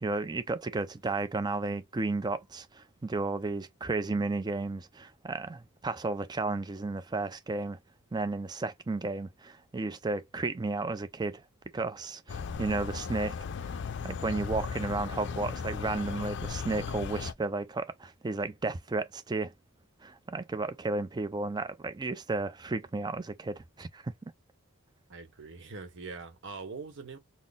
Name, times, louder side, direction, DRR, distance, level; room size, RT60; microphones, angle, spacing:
voice 1, 0.0-7.8 8.1-11.4 11.7-13.4 14.0-19.5 20.0-24.1, right 3 dB, 20° right, 0.4 m, -33 dB
sound 1, 12.3-17.3, left 6 dB, 55° left, 0.4 m, -36 dB
voice 2, 25.1-27.2, right 4 dB, 60° right, 0.9 m, -43 dB
4.0 x 2.0 x 3.5 m
head